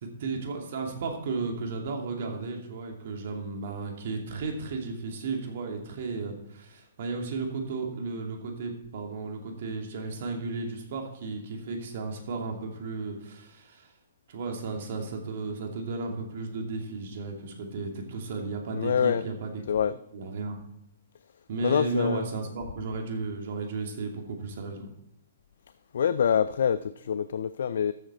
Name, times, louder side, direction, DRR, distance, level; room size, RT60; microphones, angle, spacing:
voice 1, 0.0-13.9 14.3-19.6 20.1-20.6 21.5-24.9, right 3 dB, 55° right, 2 dB, 2.6 m, -34 dB
voice 2, 18.7-19.3 19.7-20.0 21.6-22.3 25.9-27.9, left 8 dB, 65° left, 14 dB, 0.4 m, -25 dB
13.5 x 8.0 x 4.4 m, 0.81 s
hypercardioid pair, 125°, 0 cm